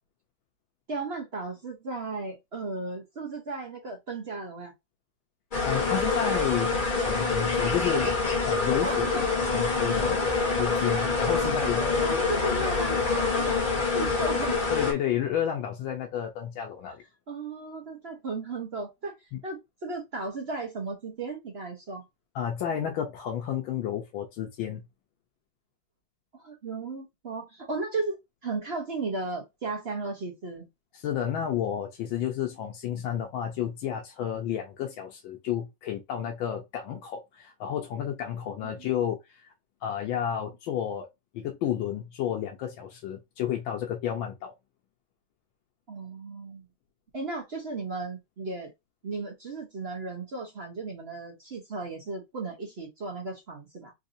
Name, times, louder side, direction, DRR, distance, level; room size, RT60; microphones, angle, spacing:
voice 1, 0.9-4.7 7.9-8.0 8.8-9.2 12.0-13.6 13.9-14.6 17.3-19.1 19.4-22.1 26.3-28.2 28.4-30.7 38.6-38.9 45.9-46.7 47.1-48.7 49.0-53.9, right 3 dB, 50° right, 0.7 m, -35 dB
sound 1, 5.5-14.9, left 3 dB, 30° left, 1.0 m, -26 dB
voice 2, 5.6-8.1 8.5-10.2 10.6-11.9 14.7-17.0 19.3-19.4 22.3-24.8 30.9-39.4 39.8-41.1 41.3-44.5, left 10 dB, 85° left, 1.5 m, -31 dB
3.9 x 2.6 x 2.6 m
omnidirectional pair, 2.1 m